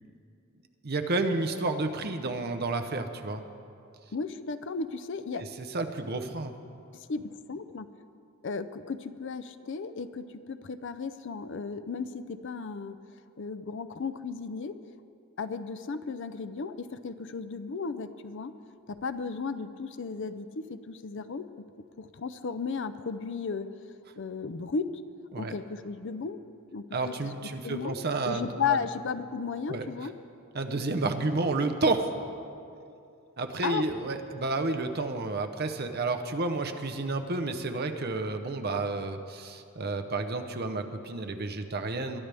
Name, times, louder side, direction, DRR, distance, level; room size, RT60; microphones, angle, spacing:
voice 1, 0.8-3.4 5.4-6.5 25.3-25.6 26.9-28.8 29.7-29.9 30.5-32.1 33.4-42.2, right 3 dB, 45° right, 6 dB, 0.8 m, -31 dB
voice 2, 4.1-5.4 6.9-7.9 8.4-13.0 13.4-14.8 15.4-18.5 18.9-21.5 22.0-23.7 24.2-25.0 25.4-26.4 26.7-27.2 27.6-28.0 28.2-30.1 33.6-33.9, left 5 dB, 60° left, 12 dB, 0.5 m, -34 dB
22.5 x 11.0 x 3.4 m, 2.6 s
head